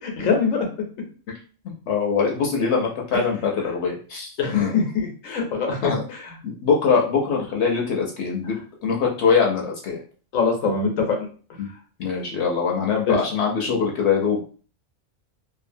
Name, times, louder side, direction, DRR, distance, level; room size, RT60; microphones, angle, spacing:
voice 1, 0.0-0.7 4.4-6.3 10.3-11.3 13.1-13.2, left 5 dB, 85° left, 2 dB, 1.1 m, -23 dB
voice 2, 1.9-4.7 5.8-6.1 6.4-10.0 11.6-11.7 12.0-14.5, left 5 dB, 65° left, 0 dB, 0.8 m, -23 dB
2.7 x 2.4 x 2.6 m, 0.39 s
omnidirectional pair, 1.3 m